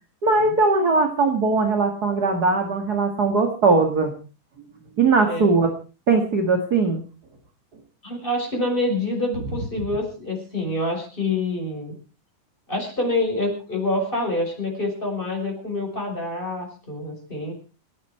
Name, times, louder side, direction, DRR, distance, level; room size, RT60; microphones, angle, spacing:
voice 1, 0.2-4.1 5.0-5.7 6.1-7.0, right 3 dB, 35° right, 5 dB, 2.0 m, -20 dB
voice 2, 8.0-11.9 12.7-17.5, left 2 dB, 15° left, 2 dB, 6.4 m, -26 dB
29.0 x 9.7 x 4.5 m, 0.36 s
omnidirectional pair, 3.9 m